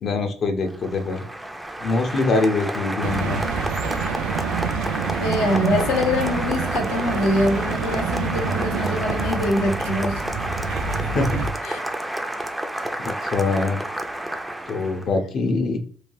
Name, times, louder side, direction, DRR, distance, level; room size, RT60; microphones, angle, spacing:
voice 1, 0.0-1.2 1.8-3.4 11.1-11.4 13.0-13.8 14.7-15.8, left 3 dB, 50° left, 0.6 m, -23 dB
Applause, 0.6-15.1, right 1 dB, 5° right, 0.3 m, -30 dB
sound 1, 3.0-11.5, right 6 dB, 85° right, 0.3 m, -27 dB
voice 2, 5.2-10.4 11.6-11.8, left 2 dB, 85° left, 0.7 m, -24 dB
3.1 x 2.2 x 2.6 m
cardioid pair, 110°, 0 cm